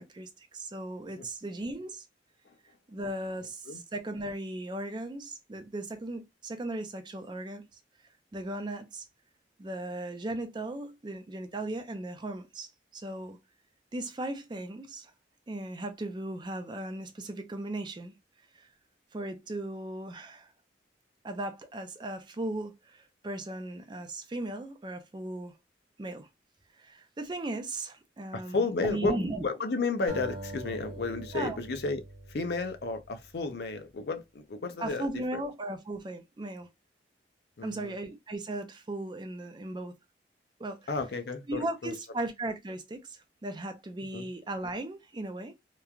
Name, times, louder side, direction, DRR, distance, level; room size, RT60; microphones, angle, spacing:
voice 1, 0.0-2.1 2.9-7.6 8.3-9.1 9.6-13.4 13.9-15.1 15.5-18.1 18.6-18.7 19.1-20.5 21.2-25.6 26.0-26.3 26.8-29.5 31.3-31.6 34.8-36.7 37.6-39.9 40.6-40.8 41.5-45.5, right 1 dB, 25° right, 0.4 m, -37 dB
voice 2, 28.3-32.0 32.3-35.1 35.3-35.4 37.6-38.0 40.9-41.9 44.1-44.3, left 3 dB, 60° left, 0.5 m, -32 dB
sound 1, 30.1-33.3, right 1 dB, 65° right, 1.1 m, -43 dB
3.0 x 2.2 x 2.3 m
head